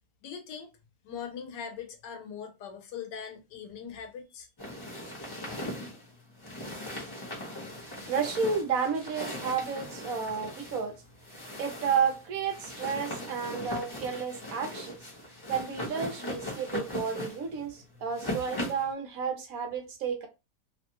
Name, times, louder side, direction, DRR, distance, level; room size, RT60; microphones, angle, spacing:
voice 1, 0.2-0.7 1.0-4.5, left 7 dB, 85° left, 1.4 m, -41 dB
sound 1, 4.6-18.9, left 1 dB, 20° left, 0.9 m, -39 dB
voice 2, 7.8-11.0 11.6-15.0 15.5-20.3, right 6 dB, 65° right, 1.1 m, -31 dB
3.2 x 2.2 x 2.9 m
omnidirectional pair, 1.8 m